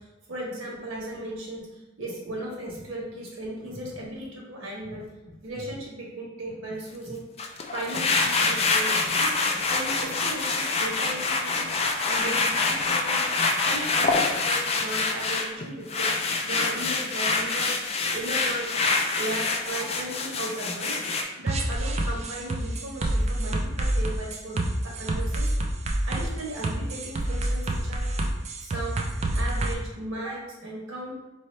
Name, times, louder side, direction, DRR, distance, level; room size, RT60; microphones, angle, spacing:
voice 1, 0.3-1.7 2.0-5.0 5.4-7.2 7.7-9.3 9.6-11.7 12.1-13.3 13.6-16.1 16.4-17.7 18.1-18.8 19.1-21.0 21.4-25.5 26.0-28.1 28.6-31.1, right 1 dB, 85° right, -3 dB, 1.2 m, -36 dB
sound 1, 7.4-21.2, left 3 dB, 30° left, 0.4 m, -26 dB
sound 2, 21.5-29.7, right 1 dB, 35° right, 0.4 m, -27 dB
4.2 x 2.8 x 3.2 m, 1.0 s
head